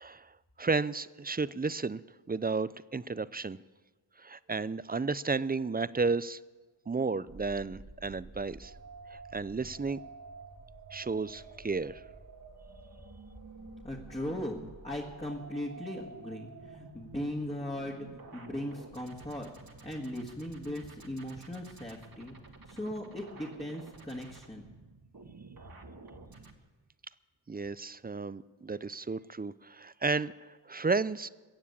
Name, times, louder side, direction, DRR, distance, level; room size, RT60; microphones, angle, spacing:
voice 1, 0.0-2.0 2.3-3.6 4.2-6.4 6.9-8.7 9.1-10.0 10.9-12.0 27.5-30.3 30.7-31.3, right 4 dB, 20° right, 18 dB, 0.4 m, -33 dB
sound 1, 7.3-26.5, right 3 dB, 45° right, 1.7 m, -50 dB
voice 2, 13.8-18.1 18.3-19.5 19.8-22.4 22.7-24.7, left 1 dB, 15° left, -2 dB, 2.0 m, -38 dB
22.0 x 7.3 x 8.5 m, 1.3 s
cardioid pair, 50°, 48 cm